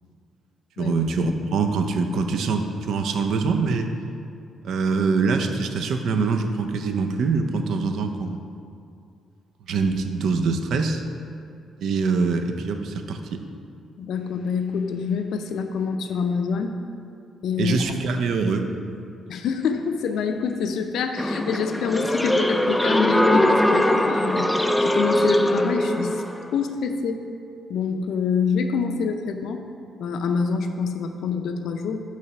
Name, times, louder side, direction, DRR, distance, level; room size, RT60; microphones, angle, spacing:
voice 1, 0.8-3.9 4.6-8.4 9.7-11.0 11.8-13.4 17.6-18.7, right 4 dB, 70° right, 6 dB, 0.5 m, -24 dB
voice 2, 14.0-16.7 17.4-17.9 19.3-26.2 26.5-27.2 27.7-29.6 30.0-32.0, left 5 dB, 75° left, 6 dB, 0.5 m, -26 dB
sound 1, 21.2-26.5, left 1 dB, 5° left, 0.3 m, -21 dB
6.6 x 3.1 x 5.9 m, 2.4 s
cardioid pair, 90°, 0 cm